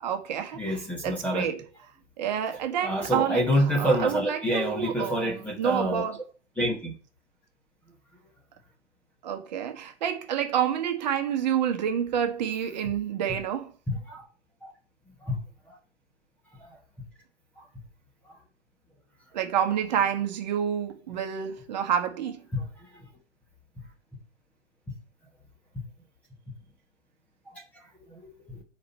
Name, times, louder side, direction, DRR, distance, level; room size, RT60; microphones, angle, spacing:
voice 1, 0.0-1.6 2.2-3.5 3.8-6.2 9.2-13.7 19.3-22.4, right 9 dB, 35° right, 1.2 m, -28 dB
voice 2, 0.6-1.5 2.8-6.1 6.6-6.9 14.1-14.2 14.6-14.7 15.2-15.4 16.6-16.7 22.5-22.7 28.1-28.6, equal, 5° left, 1.0 m, -27 dB
4.8 x 4.3 x 5.4 m
hypercardioid pair, 145°, 36 cm